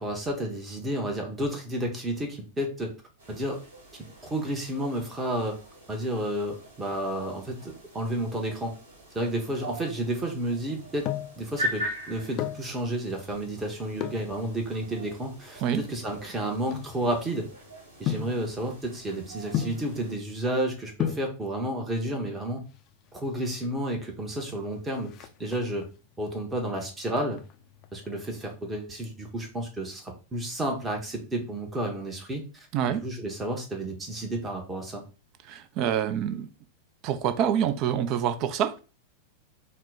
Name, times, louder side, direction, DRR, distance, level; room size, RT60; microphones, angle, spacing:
voice 1, 0.0-2.9 3.3-3.6 4.2-5.6 5.9-8.7 9.1-11.1 11.4-17.5 18.0-22.6 23.1-25.9 26.2-27.4 27.9-35.0, right 1 dB, 15° right, 2 dB, 1.0 m, -31 dB
sound 1, 3.2-20.2, equal, 65° right, 1.7 m, -42 dB
sound 2, 10.8-11.4 12.2-12.7 13.9-14.3 15.0-17.4 18.1-18.4 19.5-19.9 20.7-20.8 21.0-21.3 22.5-23.0 23.3-23.4 23.6-23.8 24.1-24.5 24.8-25.9 26.3-26.7 27.1-28.3 28.5-28.6, left 10 dB, 35° left, 0.4 m, -33 dB
voice 2, 35.5-36.5 37.0-38.8, right 9 dB, 40° right, 10 dB, 0.5 m, -26 dB
4.3 x 2.2 x 4.1 m, 0.32 s
figure-of-eight pair, 90°, 0 cm